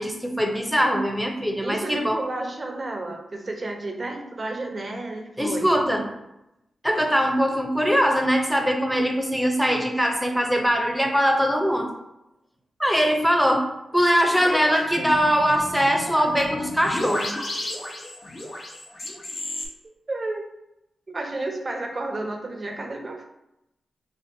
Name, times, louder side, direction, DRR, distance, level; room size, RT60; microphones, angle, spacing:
voice 1, 0.0-2.2 5.4-6.1 6.8-11.9 12.8-13.7 13.9-17.3, equal, 5° right, 2 dB, 0.8 m, -22 dB
voice 2, 1.6-5.7 19.8-20.5 21.1-23.2, right 2 dB, 45° right, 3 dB, 0.7 m, -31 dB
sound 1, 14.4-19.7, left 1 dB, 55° left, 1.0 m, -33 dB
4.3 x 2.3 x 2.8 m, 0.88 s
supercardioid pair, 45°, 0 cm